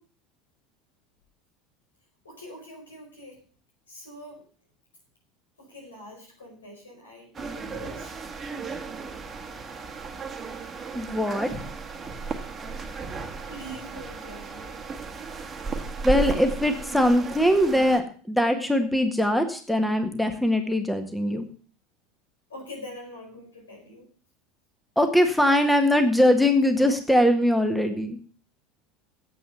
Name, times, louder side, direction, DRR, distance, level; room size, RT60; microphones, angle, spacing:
voice 1, 2.2-3.4 3.9-4.4 5.6-8.1 13.5-14.8 22.5-24.1, left 1 dB, 85° left, 0 dB, 5.0 m, -44 dB
sound 1, 7.3-18.0, right 4 dB, 30° right, 1.6 m, -35 dB
voice 2, 10.9-11.5 16.0-21.5 25.0-28.2, left 1 dB, ahead, 6 dB, 1.7 m, -22 dB
9.3 x 8.6 x 7.0 m, 0.41 s
figure-of-eight pair, 75°, 0 cm